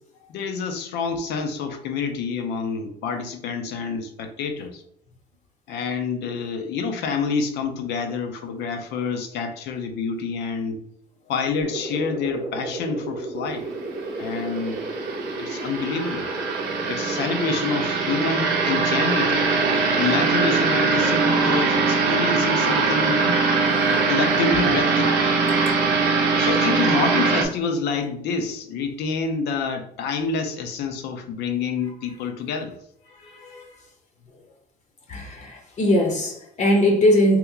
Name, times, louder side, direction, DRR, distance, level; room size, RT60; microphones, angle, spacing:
voice 1, 0.3-4.8 5.7-10.8 11.3-13.6 14.2-14.8 15.4-16.3 16.9-19.4 20.0-23.4 23.9-25.3 26.4-32.7, left 5 dB, 80° left, 6 dB, 0.6 m, -27 dB
sound 1, 11.6-21.6, right 2 dB, 30° right, 0.7 m, -33 dB
sound 2, 13.9-27.4, right 4 dB, 85° right, 0.6 m, -22 dB
voice 2, 33.3-33.6 35.1-37.4, left 1 dB, 45° left, 3 dB, 0.7 m, -21 dB
2.9 x 2.1 x 3.7 m, 0.70 s
cardioid pair, 110°, 17 cm